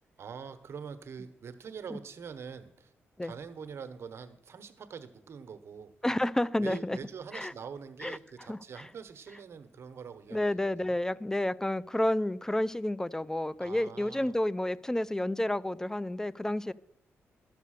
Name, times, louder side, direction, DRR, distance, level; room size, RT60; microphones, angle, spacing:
voice 1, 0.2-2.9 3.2-5.9 6.6-11.0 13.6-14.4, right 6 dB, 60° right, 10 dB, 1.2 m, -44 dB
voice 2, 6.0-7.0 7.3-7.5 8.0-8.2 8.5-8.9 10.3-16.7, left 1 dB, 10° left, 18 dB, 0.4 m, -30 dB
12.5 x 6.7 x 6.6 m, 0.76 s
cardioid pair, 80°, 5 cm